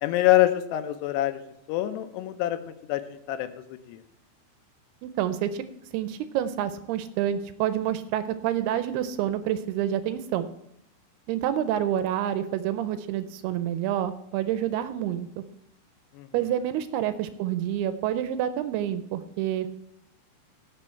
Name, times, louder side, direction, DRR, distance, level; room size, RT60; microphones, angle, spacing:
voice 1, 0.0-1.4 1.7-2.6 2.9-3.5 3.9-4.0 16.2-16.3, left 14 dB, 80° left, 10 dB, 2.8 m, -25 dB
voice 2, 5.0-5.6 5.9-10.5 11.3-15.4 16.3-19.7, right 11 dB, 80° right, 11 dB, 2.4 m, -28 dB
17.0 x 6.2 x 4.4 m, 0.79 s
omnidirectional pair, 4.9 m